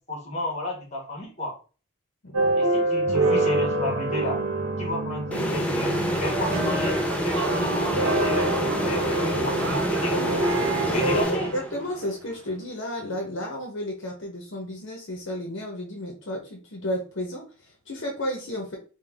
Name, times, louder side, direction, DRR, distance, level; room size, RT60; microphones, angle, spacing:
voice 1, 0.1-1.6 2.6-4.4 4.8-11.5, left 1 dB, 30° left, 1 dB, 1.2 m, -33 dB
sound 1, 2.3-11.2, right 2 dB, 80° right, 0.9 m, -26 dB
sound 2, 5.3-12.0, equal, 5° left, 0.4 m, -27 dB
sound 3, 5.8-12.6, right 5 dB, 60° right, 0.4 m, -36 dB
voice 2, 10.9-18.8, left 1 dB, 55° left, 0 dB, 0.9 m, -33 dB
3.8 x 2.3 x 3.4 m, 0.36 s
head